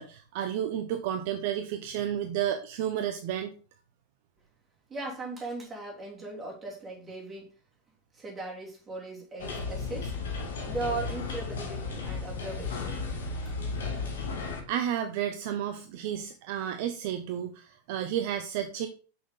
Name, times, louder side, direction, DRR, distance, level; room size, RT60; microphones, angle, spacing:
voice 1, 0.0-3.5 14.7-18.9, right 10 dB, 50° right, 0.6 m, -31 dB
voice 2, 4.9-7.5 8.1-10.2 10.6-13.0 13.4-13.6 13.8-13.9, right 3 dB, 15° right, 3.0 m, -38 dB
sound 1, 9.4-14.6, left 4 dB, 60° left, 1.7 m, -34 dB
6.1 x 6.0 x 3.8 m
figure-of-eight pair, 90°, 0 cm